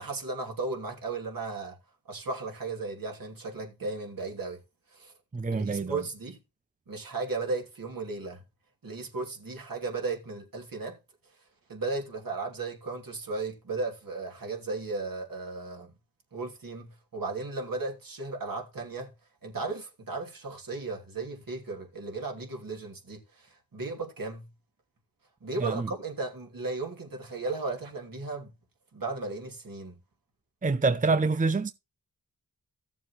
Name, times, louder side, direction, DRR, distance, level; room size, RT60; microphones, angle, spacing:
voice 1, 0.0-1.8 2.1-4.6 4.9-5.1 5.5-6.4 6.9-8.4 8.8-11.0 11.7-15.9 16.3-19.1 19.4-24.5 25.4-28.5 28.9-30.0, right 3 dB, 60° right, 2.9 m, -35 dB
voice 2, 5.3-6.0 25.6-25.8 30.6-31.7, right 3 dB, 20° right, 0.6 m, -26 dB
14.5 x 7.2 x 3.1 m
cardioid pair, 45°, 39 cm